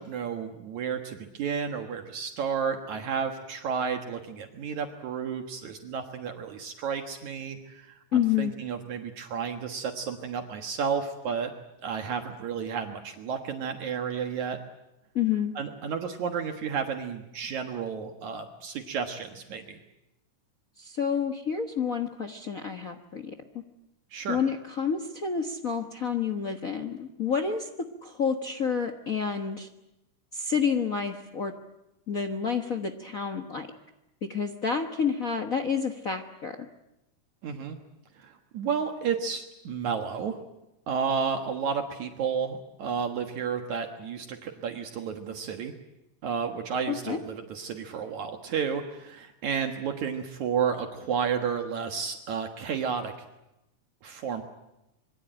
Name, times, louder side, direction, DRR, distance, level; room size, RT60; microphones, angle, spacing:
voice 1, 0.0-11.5 11.8-14.6 15.6-19.8 24.1-24.4 37.4-37.8 38.2-40.4 40.9-45.7 46.2-53.1 54.0-54.4, right 6 dB, 65° right, 5 dB, 2.7 m, -32 dB
voice 2, 8.1-8.5 15.1-15.5 20.8-23.3 24.3-27.7 28.0-29.7 30.3-31.5 32.1-33.7 34.2-36.7 46.9-47.2, left 6 dB, 70° left, 7 dB, 0.8 m, -29 dB
26.5 x 23.0 x 9.0 m, 0.93 s
omnidirectional pair, 3.7 m